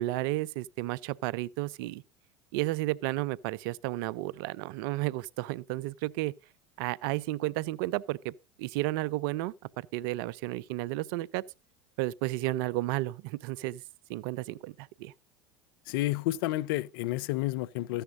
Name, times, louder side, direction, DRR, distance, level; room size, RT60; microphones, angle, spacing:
voice 1, 0.0-2.0 2.5-6.3 6.8-8.3 8.6-11.4 12.0-13.8 14.1-15.1, right 17 dB, 65° right, 0.5 m, -32 dB
voice 2, 15.9-18.0, left 16 dB, 65° left, 0.5 m, -30 dB
14.0 x 10.0 x 2.5 m
hypercardioid pair, 80°, 12 cm